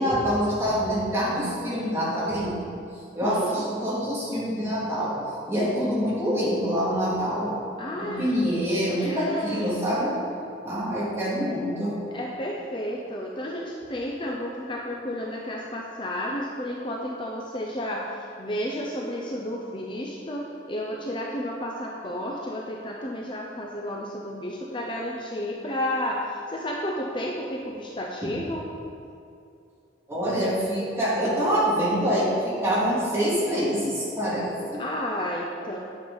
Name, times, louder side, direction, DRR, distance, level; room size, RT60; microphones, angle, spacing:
voice 1, 0.0-2.6 3.1-5.2 5.5-7.5 8.0-10.1 10.6-12.0 30.1-34.8, equal, 15° right, -8 dB, 2.2 m, -25 dB
voice 2, 3.2-3.7 7.8-8.3 8.9-9.6 12.1-28.6 34.8-35.8, left 1 dB, 25° left, -1 dB, 0.6 m, -32 dB
9.6 x 6.8 x 3.9 m, 2.5 s
head